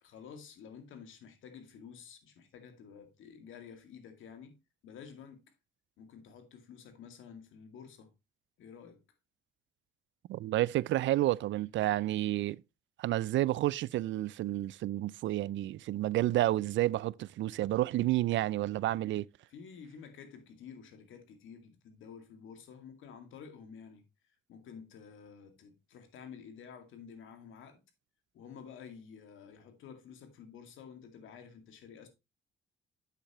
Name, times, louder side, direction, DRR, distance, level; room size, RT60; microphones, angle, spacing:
voice 1, 0.0-4.6 4.8-5.5 6.0-8.1 8.6-9.0 19.5-27.8 28.3-32.1, left 7 dB, 80° left, 2.2 m, -51 dB
voice 2, 10.3-12.6 13.0-19.3, right 15 dB, 70° right, 0.4 m, -30 dB
8.9 x 7.6 x 3.0 m
cardioid pair, 90°, 20 cm